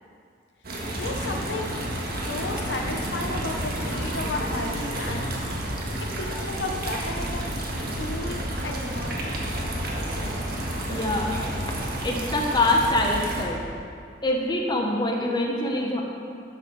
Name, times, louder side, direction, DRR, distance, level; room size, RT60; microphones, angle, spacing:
sound 1, 0.6-13.4, right 1 dB, 55° right, 1.6 m, -30 dB
voice 1, 1.0-1.8 2.1-5.3 6.2-7.7 8.0-9.3, left 2 dB, 70° left, 3 dB, 0.8 m, -33 dB
voice 2, 10.9-11.3 12.0-13.6 14.2-16.0, left 1 dB, 25° left, 0 dB, 1.1 m, -24 dB
12.5 x 6.5 x 4.7 m, 2.3 s
head